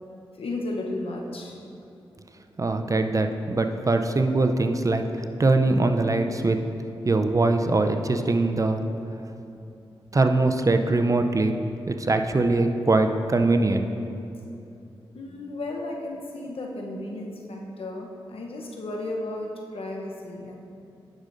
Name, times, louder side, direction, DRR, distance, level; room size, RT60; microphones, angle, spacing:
voice 1, 0.4-1.6 15.1-20.5, left 2 dB, 70° left, 0 dB, 0.9 m, -34 dB
voice 2, 2.6-6.6 7.0-8.9 10.1-11.6 11.9-13.8, right 2 dB, 35° right, 6 dB, 0.5 m, -22 dB
10.0 x 6.3 x 2.6 m, 2.7 s
cardioid pair, 40°, 10 cm